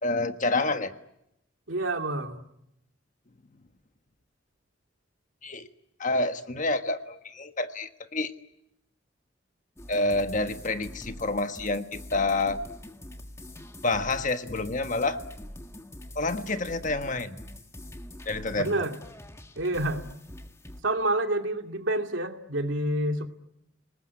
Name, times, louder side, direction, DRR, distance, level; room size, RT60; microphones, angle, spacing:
voice 1, 0.0-0.9 5.4-5.7 6.0-8.3 9.9-12.6 13.8-15.2 16.1-17.4 18.3-18.8, left 2 dB, 40° left, 9 dB, 1.4 m, -28 dB
voice 2, 1.7-2.4 18.5-18.9 19.6-20.0 20.8-23.3, right 1 dB, 75° right, 5 dB, 2.5 m, -28 dB
sound 1, 9.8-20.8, left 1 dB, 15° left, 1.6 m, -44 dB
30.0 x 20.0 x 9.7 m, 0.83 s
head